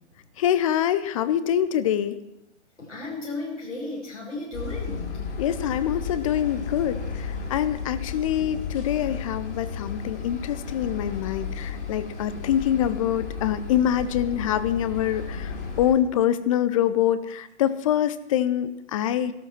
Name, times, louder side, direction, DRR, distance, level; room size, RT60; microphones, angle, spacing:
voice 1, 0.4-2.2 5.4-19.3, left 10 dB, 30° left, 14 dB, 0.7 m, -25 dB
voice 2, 2.8-5.2, left 2 dB, 85° left, -5 dB, 6.4 m, -34 dB
sound 1, 4.5-15.9, left 5 dB, 45° left, 4.0 m, -34 dB
15.0 x 12.5 x 6.1 m, 0.87 s
figure-of-eight pair, 125°, 35 cm